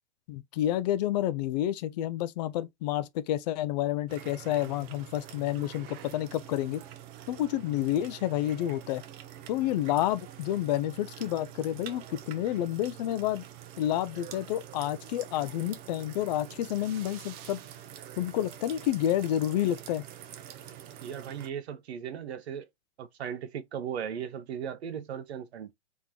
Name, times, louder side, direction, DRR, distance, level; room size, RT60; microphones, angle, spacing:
voice 1, 0.3-6.8 7.3-9.0 9.5-13.4 13.8-17.6 18.2-20.1, left 12 dB, 40° left, 0.5 m, -29 dB
sound 1, 4.1-21.5, right 11 dB, 25° right, 0.6 m, -46 dB
voice 2, 21.0-22.6 23.0-25.7, right 8 dB, 65° right, 0.9 m, -37 dB
3.7 x 3.6 x 3.0 m
hypercardioid pair, 125°, 34 cm